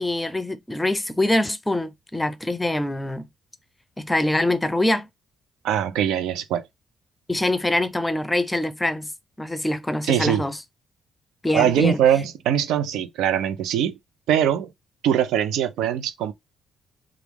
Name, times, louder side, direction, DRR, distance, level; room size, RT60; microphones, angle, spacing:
voice 1, 0.0-3.3 4.0-5.1 7.3-9.1 9.4-10.6 11.4-12.0, left 1 dB, 10° left, 0.5 m, -24 dB
voice 2, 5.6-6.7 10.1-10.4 11.5-14.0 14.3-14.7 15.0-16.3, right 9 dB, 85° right, 0.5 m, -22 dB
3.0 x 2.4 x 3.4 m
cardioid pair, 90°, 0 cm